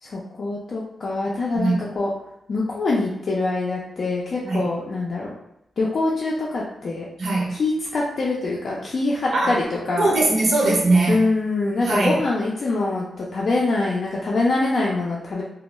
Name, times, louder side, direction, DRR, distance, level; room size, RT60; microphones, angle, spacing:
voice 1, 0.0-2.1 2.5-5.3 5.8-7.0 7.5-10.2 11.1-15.4, left 2 dB, 60° left, -5 dB, 0.4 m, -24 dB
voice 2, 7.2-7.5 9.3-9.5 10.0-11.2 11.8-12.2, right 2 dB, 80° right, -3 dB, 0.7 m, -20 dB
2.2 x 2.0 x 3.0 m, 0.80 s
cardioid pair, 80°, 0 cm